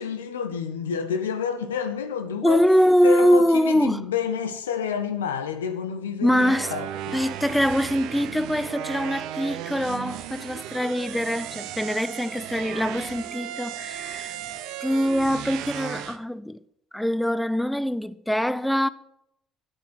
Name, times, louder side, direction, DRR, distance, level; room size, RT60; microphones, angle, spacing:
voice 1, 0.0-2.6 3.0-7.2, left 7 dB, 85° left, 0.7 m, -29 dB
voice 2, 2.4-4.1 6.2-6.7 7.1-14.4 14.8-16.6 16.9-18.9, equal, 5° left, 0.5 m, -23 dB
sound 1, 6.3-16.2, right 11 dB, 70° right, 0.7 m, -35 dB
9.2 x 8.0 x 6.3 m
hypercardioid pair, 60°, 0 cm